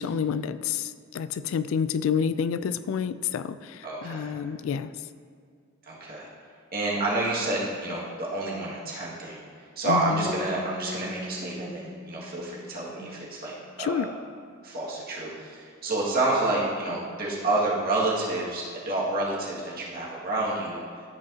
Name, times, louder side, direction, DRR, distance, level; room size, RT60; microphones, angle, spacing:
voice 1, 0.0-4.9 9.9-10.3 13.8-14.1, left 7 dB, 75° left, 13 dB, 0.3 m, -29 dB
voice 2, 3.8-4.3 5.9-6.3 6.7-9.4 9.8-13.5 13.8-14.1 14.6-20.8, right 2 dB, 50° right, -6 dB, 2.0 m, -29 dB
sound 1, 10.2-13.7, left 2 dB, 30° right, 1.6 m, -40 dB
13.5 x 5.4 x 2.8 m, 2.2 s
head